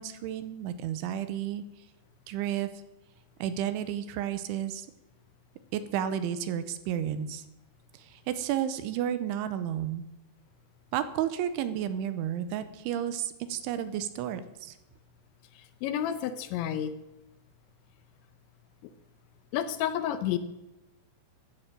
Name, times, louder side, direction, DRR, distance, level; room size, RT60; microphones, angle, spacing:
voice 1, 0.0-1.6 2.3-2.7 3.4-4.9 5.7-7.4 8.0-10.0 10.9-14.7, right 10 dB, 80° right, 12 dB, 3.2 m, -32 dB
voice 2, 15.8-16.9 19.5-20.4, left 10 dB, 75° left, 11 dB, 3.0 m, -30 dB
14.5 x 12.0 x 7.6 m, 0.94 s
omnidirectional pair, 5.7 m